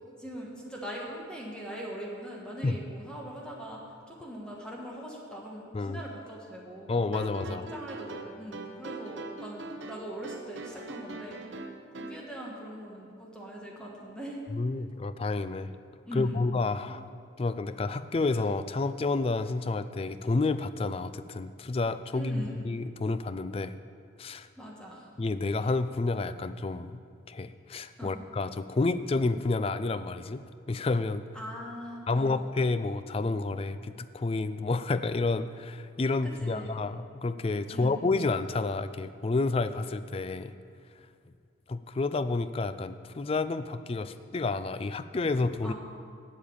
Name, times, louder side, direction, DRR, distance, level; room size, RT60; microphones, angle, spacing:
voice 1, 0.2-3.8 4.1-7.0 7.4-11.4 12.0-14.4 16.0-16.5 16.9-17.0 22.1-22.7 24.6-25.0 28.0-28.2 31.3-32.4 36.2-36.8 37.7-38.1 44.1-44.2 45.6-45.7, equal, 5° left, -3 dB, 1.4 m, -41 dB
voice 2, 6.9-7.7 14.5-15.7 16.1-17.1 17.4-23.8 24.2-24.5 25.2-27.0 27.3-30.4 30.7-31.2 32.1-40.5 41.7-45.7, left 3 dB, 30° left, 12 dB, 0.3 m, -30 dB
sound 1, 7.0-12.2, right 2 dB, 65° right, 0.8 m, -41 dB
8.4 x 7.6 x 8.7 m, 2.3 s
head